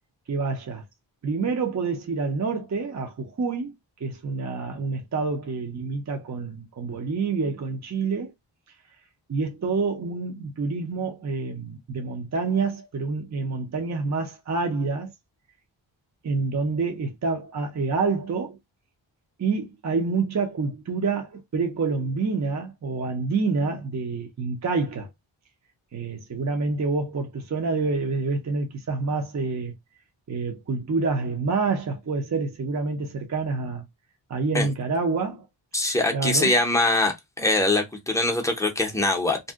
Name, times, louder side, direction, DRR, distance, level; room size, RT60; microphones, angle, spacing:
voice 1, 0.3-0.8 1.2-3.7 4.0-8.3 9.3-15.1 16.2-18.6 19.4-25.1 25.9-29.7 30.3-33.8 34.3-35.5 36.1-36.5, right 4 dB, 35° right, 0.6 m, -27 dB
voice 2, 35.7-39.4, left 2 dB, 5° left, 0.6 m, -23 dB
2.7 x 2.1 x 3.4 m
wide cardioid pair, 170°, 47 cm